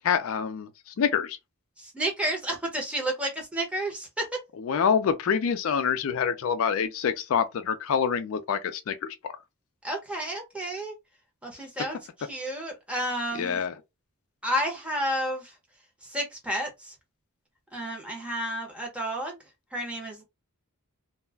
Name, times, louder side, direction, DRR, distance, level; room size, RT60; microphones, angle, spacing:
voice 1, 0.0-1.4 4.6-9.3 13.3-13.7, left 7 dB, 65° left, 0.3 m, -26 dB
voice 2, 1.8-4.4 9.8-10.9 11.4-13.6 14.4-15.5 16.0-16.9 17.7-19.4 19.7-20.2, equal, 5° right, 0.8 m, -31 dB
2.3 x 2.1 x 3.3 m
head